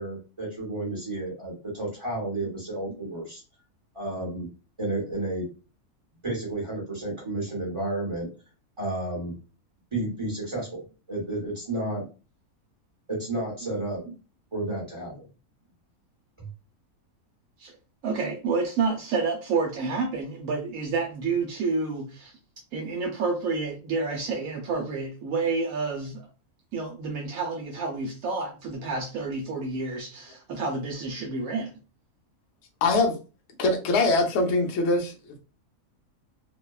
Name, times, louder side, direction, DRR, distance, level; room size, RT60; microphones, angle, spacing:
voice 1, 0.0-3.4 3.9-4.5 4.8-5.5 6.2-8.3 8.8-9.3 9.9-10.8 11.1-12.0 13.1-14.0 14.5-15.2 16.4-16.5, right 2 dB, 25° right, 0.7 m, -31 dB
voice 2, 18.0-22.4 22.7-26.2 26.7-31.7, right 4 dB, 75° right, 1.0 m, -29 dB
voice 3, 32.8-33.2 33.6-35.1, left 2 dB, 60° left, 0.8 m, -22 dB
2.6 x 2.1 x 2.2 m
omnidirectional pair, 1.6 m